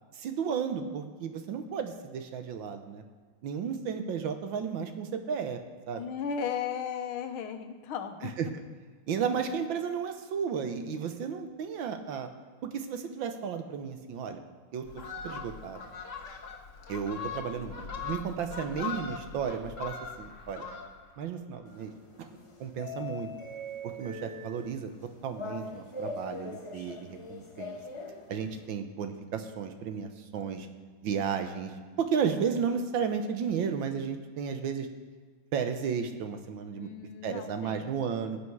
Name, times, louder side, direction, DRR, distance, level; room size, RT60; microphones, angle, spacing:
voice 1, 0.1-3.0 3.4-5.6 5.9-6.0 8.2-8.5 9.1-12.3 12.6-14.4 14.7-14.9 15.2-15.8 16.9-20.7 21.2-21.9 22.2-22.3 22.6-23.3 23.8-24.9 25.2-27.8 28.3-30.7 31.0-34.9 35.5-36.9 37.2-38.4, right 6 dB, 70° right, 7 dB, 1.5 m, -33 dB
voice 2, 6.0-8.4 36.7-37.9, left 7 dB, 85° left, 7 dB, 1.8 m, -35 dB
Fowl, 14.8-21.2 21.5-21.8, left 6 dB, 45° left, 1.2 m, -40 dB
sound 1, 21.7-28.7, left 2 dB, 25° left, 0.6 m, -42 dB
17.0 x 8.6 x 4.7 m, 1.5 s
omnidirectional pair, 2.3 m